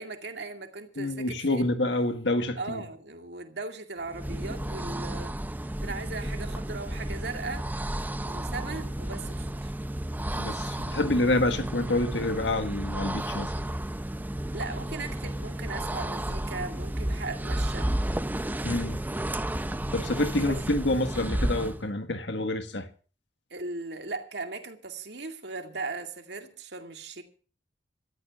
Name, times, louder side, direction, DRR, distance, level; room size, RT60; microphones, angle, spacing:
voice 1, 0.0-1.7 2.6-9.7 14.5-17.9 20.5-20.6 23.5-27.2, right 3 dB, 65° right, 2.3 m, -38 dB
voice 2, 1.0-2.8 10.4-13.5 18.6-19.0 19.9-22.9, left 2 dB, 75° left, 1.6 m, -27 dB
sound 1, 4.0-21.9, right 1 dB, 10° right, 0.6 m, -32 dB
26.5 x 14.0 x 2.5 m
head